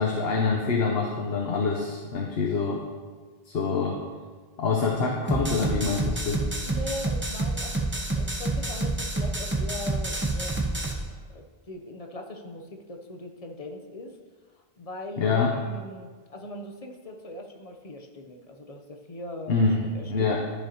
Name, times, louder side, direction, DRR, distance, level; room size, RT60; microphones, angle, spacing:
voice 1, 0.0-2.8 3.5-4.0 4.6-6.4 15.2-15.5 19.5-20.4, left 4 dB, 75° left, 0 dB, 1.0 m, -25 dB
sound 1, 5.3-10.9, right 2 dB, 15° right, 0.7 m, -28 dB
voice 2, 6.6-14.2 14.6-19.7 19.9-20.4, left 1 dB, 40° left, 3 dB, 0.7 m, -40 dB
12.5 x 5.0 x 2.9 m, 1.5 s
omnidirectional pair, 1.0 m